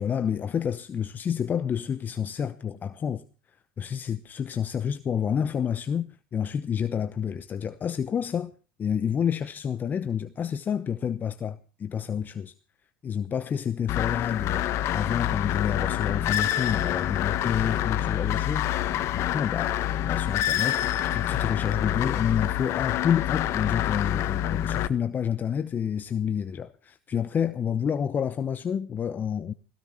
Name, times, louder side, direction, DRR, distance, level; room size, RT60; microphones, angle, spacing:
voice 1, 0.0-3.2 3.8-8.5 8.8-12.5 13.0-14.6 14.9-29.5, left 8 dB, 30° left, 0.9 m, -29 dB
sound 1, 13.9-24.9, left 12 dB, 50° left, 1.2 m, -27 dB
17.0 x 16.0 x 4.4 m
hypercardioid pair, 95°, 6 cm